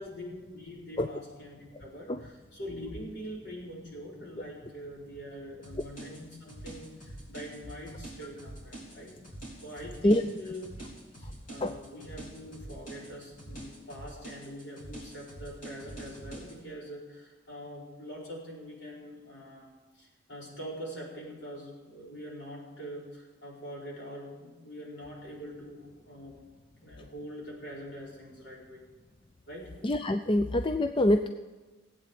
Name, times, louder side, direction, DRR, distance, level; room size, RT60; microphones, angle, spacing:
voice 1, 0.0-9.2 9.6-10.6 11.2-19.7 19.9-26.4 26.7-28.9 29.5-29.7, equal, 60° left, -4 dB, 4.9 m, -44 dB
sound 1, 5.6-16.5, right 1 dB, 40° left, 3.7 m, -45 dB
voice 2, 29.8-31.3, left 1 dB, 25° left, 8 dB, 0.4 m, -25 dB
18.0 x 8.7 x 7.6 m, 1.2 s
head